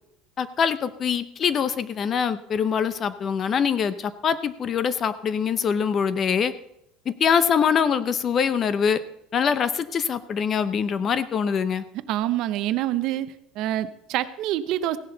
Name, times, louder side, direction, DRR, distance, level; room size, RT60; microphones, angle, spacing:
voice 1, 0.4-6.5 7.1-9.0 9.3-11.8, left 7 dB, 30° left, 14 dB, 0.6 m, -24 dB
voice 2, 12.1-13.3 13.6-15.0, right 13 dB, 55° right, 13 dB, 0.7 m, -26 dB
16.0 x 11.0 x 3.9 m, 0.78 s
cardioid pair, 150°, 0 cm